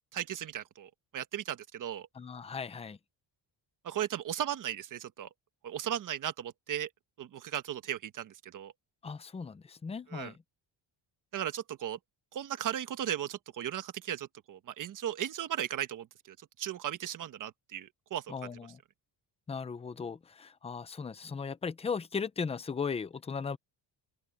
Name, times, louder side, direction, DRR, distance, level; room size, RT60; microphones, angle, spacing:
voice 1, 0.1-2.1 3.8-5.3 5.6-6.9 7.2-8.7 10.1-10.3 11.3-12.0 12.3-18.3, right 10 dB, 45° right, 1.3 m, -36 dB
voice 2, 2.1-3.0 9.0-10.4 18.3-18.8 19.5-23.6, left 5 dB, 15° left, 0.6 m, -37 dB
open air
cardioid pair, 180°, 44 cm